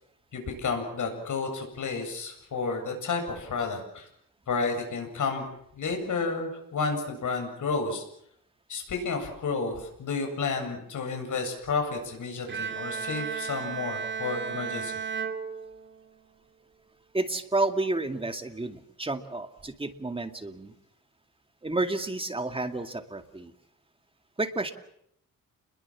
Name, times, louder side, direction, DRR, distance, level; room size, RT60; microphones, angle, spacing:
voice 1, 0.3-4.1 4.5-5.5 5.8-8.0 8.7-14.9, left 4 dB, 60° left, 4 dB, 7.9 m, -31 dB
Bowed string instrument, 12.5-16.2, right 6 dB, 35° right, 2.4 m, -34 dB
voice 2, 17.1-20.7 21.6-23.5 24.4-24.7, right 2 dB, 15° right, 6 dB, 2.3 m, -30 dB
29.0 x 22.0 x 7.4 m, 0.73 s
cardioid pair, 120°, 34 cm